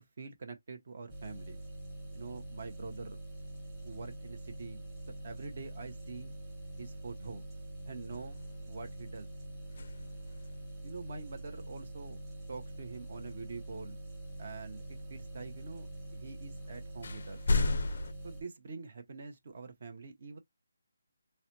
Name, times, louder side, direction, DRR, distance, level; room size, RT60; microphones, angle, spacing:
voice 1, 0.0-1.6 2.1-3.2 3.8-4.8 5.2-6.3 6.8-7.5 7.9-8.4 8.6-9.3 10.8-12.2 12.5-14.0 14.4-17.4 18.2-20.4, right 4 dB, 40° right, 0.7 m, -45 dB
sound 1, 1.1-18.4, right 1 dB, 10° right, 1.0 m, -45 dB
sound 2, 8.1-8.9 9.6-10.6 14.1-14.2 16.3-16.4 17.0-18.1, left 2 dB, 45° left, 0.4 m, -33 dB
3.9 x 2.1 x 2.9 m
hypercardioid pair, 175°, 0 cm